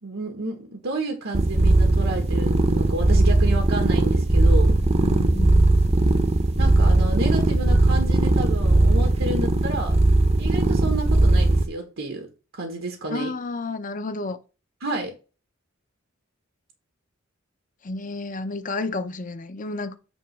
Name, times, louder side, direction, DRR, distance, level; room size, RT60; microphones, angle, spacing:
voice 1, 0.0-4.8 6.6-10.0 10.4-12.3 12.5-13.3 14.8-15.1, right 2 dB, 90° right, 1.5 m, -30 dB
sound 1, 1.3-11.7, right 2 dB, 30° right, 0.7 m, -19 dB
voice 2, 5.0-5.6 13.1-14.4 17.8-20.0, left 3 dB, 40° left, 0.7 m, -31 dB
9.0 x 3.1 x 5.8 m
head